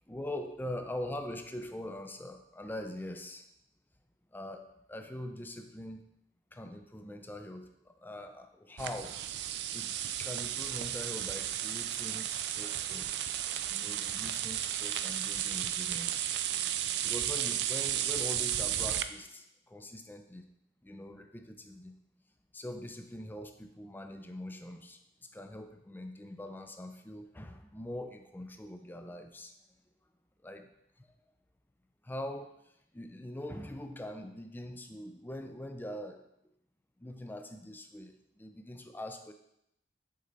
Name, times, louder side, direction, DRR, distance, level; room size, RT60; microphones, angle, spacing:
voice 1, 0.1-3.5 4.3-6.0 6.5-9.2 9.7-9.9 10.2-13.1 13.7-16.2 16.8-20.5 20.8-21.9 22.5-25.0 25.3-29.5 30.4-30.7 31.0-31.1 32.0-32.5 32.9-36.2 37.0-39.3, left 1 dB, 10° left, 6 dB, 0.4 m, -43 dB
sound 1, 8.8-19.0, right 11 dB, 75° right, 0.4 m, -34 dB
6.5 x 4.3 x 3.9 m, 0.81 s
head